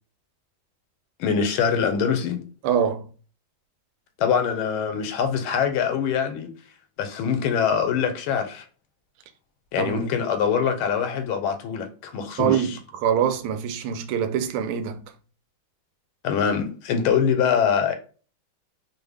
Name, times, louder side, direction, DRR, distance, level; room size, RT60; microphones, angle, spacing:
voice 1, 1.2-2.4 4.2-6.5 7.0-8.6 9.7-12.8 16.2-17.9, left 7 dB, 85° left, 1.5 m, -24 dB
voice 2, 2.6-3.1 9.8-10.1 12.4-15.0, right 8 dB, 85° right, 1.4 m, -24 dB
3.4 x 2.2 x 3.3 m
omnidirectional pair, 2.3 m